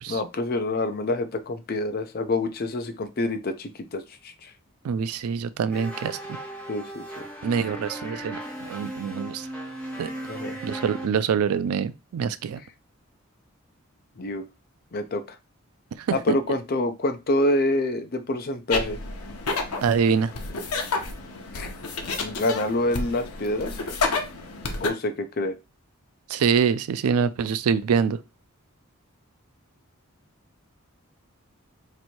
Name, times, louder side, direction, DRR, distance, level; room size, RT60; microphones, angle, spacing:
voice 1, 0.1-4.5 6.7-7.3 10.3-10.6 12.6-12.7 14.2-14.5 14.9-15.4 16.1-19.0 21.5-21.7 22.2-23.8 24.8-25.6, left 1 dB, 45° left, 0.5 m, -27 dB
voice 2, 4.8-6.4 7.4-9.5 10.0-10.1 10.6-12.6 16.0-16.2 19.8-20.3 26.3-28.2, right 6 dB, 85° right, 0.3 m, -25 dB
sound 1, 5.7-11.1, right 1 dB, 5° left, 1.0 m, -36 dB
sound 2, 18.7-24.9, left 3 dB, 90° left, 0.8 m, -30 dB
3.0 x 2.6 x 4.3 m
head